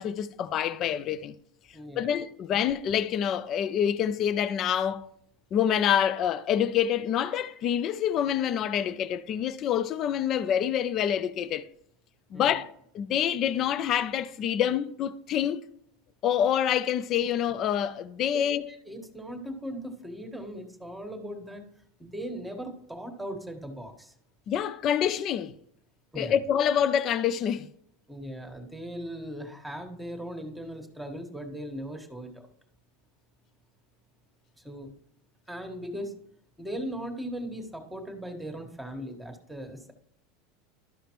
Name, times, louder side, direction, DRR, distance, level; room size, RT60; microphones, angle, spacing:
voice 1, 0.0-1.3 2.0-5.1 5.5-11.7 12.3-15.6 16.2-18.7 24.5-25.5 26.2-27.7, left 9 dB, 45° left, 0.5 m, -27 dB
voice 2, 1.7-2.1 12.3-12.6 18.3-18.4 18.7-21.7 22.0-24.1 26.1-26.4 28.1-32.5 34.6-34.9 35.5-36.1 36.6-39.9, equal, 5° right, 1.5 m, -38 dB
12.5 x 5.0 x 3.1 m
supercardioid pair, 110°, 0 cm